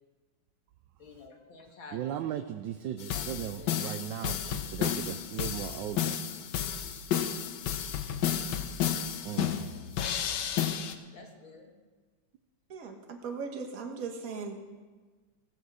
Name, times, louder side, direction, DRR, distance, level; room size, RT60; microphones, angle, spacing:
voice 1, 1.0-2.5 3.1-3.7 8.8-9.1 11.1-11.7, left 3 dB, 85° left, 2 dB, 2.4 m, -50 dB
voice 2, 1.9-6.2 9.2-9.6, right 10 dB, 75° right, 8 dB, 1.2 m, -37 dB
sound 1, 3.0-10.9, left 9 dB, 70° left, 1.3 m, -32 dB
voice 3, 12.7-14.6, right 5 dB, 50° right, 4 dB, 1.6 m, -38 dB
16.5 x 7.7 x 6.3 m, 1.4 s
omnidirectional pair, 2.1 m